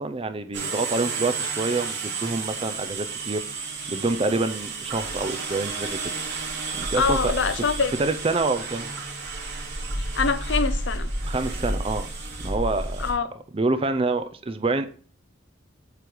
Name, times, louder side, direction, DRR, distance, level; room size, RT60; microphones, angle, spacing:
voice 1, 0.0-3.4 3.9-6.1 6.7-7.3 7.9-8.9 11.2-12.1 12.4-13.1 13.5-14.9, right 3 dB, 25° right, 0.4 m, -27 dB
sound 1, 0.5-13.1, right 3 dB, 60° right, 2.5 m, -31 dB
voice 2, 6.9-7.9 10.2-11.1 13.0-13.3, left 5 dB, 60° left, 0.6 m, -24 dB
8.1 x 3.1 x 5.1 m
head